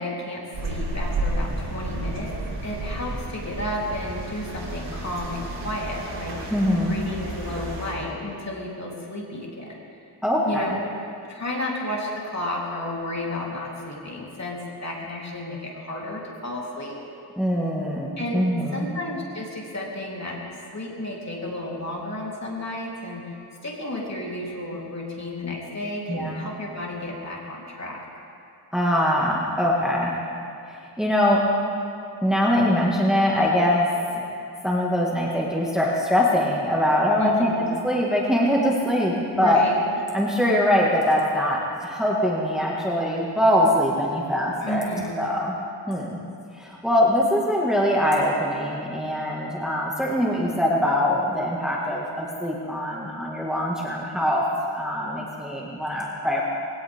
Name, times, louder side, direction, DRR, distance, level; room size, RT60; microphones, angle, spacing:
voice 1, 0.0-2.3 2.6-6.4 6.8-9.8 10.4-10.7 11.3-17.0 18.2-18.4 18.7-20.4 20.7-23.4 23.6-28.0 37.2-37.7 39.2-39.8 44.6-45.2, left 1 dB, 40° left, -4 dB, 3.6 m, -32 dB
sound 1, 0.5-7.9, right 2 dB, 85° right, 4.3 m, -31 dB
voice 2, 6.5-6.9 10.2-10.7 17.4-18.9 26.1-26.5 28.7-30.2 30.7-31.5 32.2-34.2 34.6-39.6 40.1-45.6 45.9-46.2 46.5-54.4 54.7-56.4, left 1 dB, ahead, -4 dB, 1.9 m, -23 dB
21.5 x 17.0 x 3.6 m, 2.5 s
wide cardioid pair, 85°, 43 cm